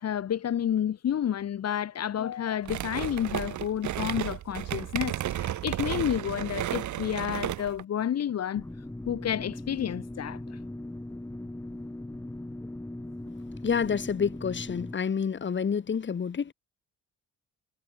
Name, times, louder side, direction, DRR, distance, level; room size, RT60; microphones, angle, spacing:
voice 1, 0.0-8.6 9.1-10.6, left 9 dB, 55° left, 1.8 m, -30 dB
sound 1, 2.6-7.8, right 12 dB, 70° right, 2.1 m, -33 dB
sound 2, 8.6-14.9, left 1 dB, 10° left, 2.5 m, -39 dB
voice 2, 13.6-16.5, left 6 dB, 40° left, 2.2 m, -28 dB
cardioid pair, 90°, 30 cm